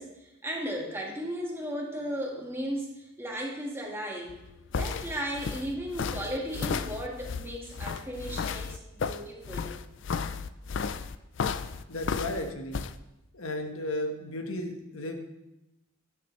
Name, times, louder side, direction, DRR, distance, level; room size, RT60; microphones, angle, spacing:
voice 1, 0.0-4.3 4.7-9.7, equal, 10° right, -1 dB, 1.6 m, -35 dB
sound 1, 4.3-12.9, left 5 dB, 60° left, 0.4 m, -34 dB
voice 2, 11.9-12.8 13.3-15.1, left 1 dB, 85° left, 4 dB, 1.3 m, -34 dB
11.5 x 9.8 x 3.2 m, 0.93 s
head